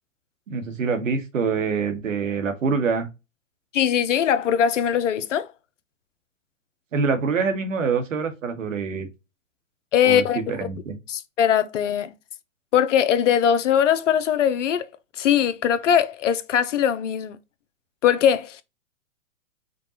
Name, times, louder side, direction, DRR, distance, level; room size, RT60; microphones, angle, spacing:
voice 1, 0.5-3.1 6.9-9.1 10.0-10.2 10.5-11.0, right 5 dB, 75° right, 1.2 m, -25 dB
voice 2, 3.7-5.5 9.9-10.7 11.1-12.1 12.7-14.9 15.2-17.4 18.0-18.6, left 9 dB, 65° left, 0.6 m, -21 dB
5.1 x 2.2 x 2.8 m
hypercardioid pair, 125°, 39 cm